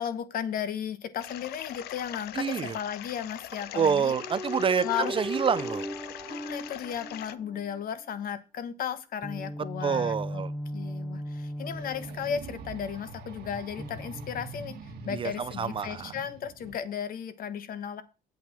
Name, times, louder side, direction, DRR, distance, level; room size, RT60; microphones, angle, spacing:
voice 1, 0.0-4.1 4.8-5.1 6.2-10.4 10.7-18.0, left 8 dB, 60° left, 1.2 m, -35 dB
sound 1, 1.2-7.3, left 13 dB, 75° left, 0.6 m, -42 dB
voice 2, 2.3-2.7 3.7-5.9 9.8-10.5 15.1-16.1, right 7 dB, 30° right, 0.5 m, -27 dB
sound 2, 4.1-7.8 9.2-13.0 13.8-15.0, equal, 5° right, 0.8 m, -37 dB
sound 3, 11.7-16.7, right 3 dB, 70° right, 1.7 m, -44 dB
8.3 x 6.5 x 6.1 m
cardioid pair, 110°, 17 cm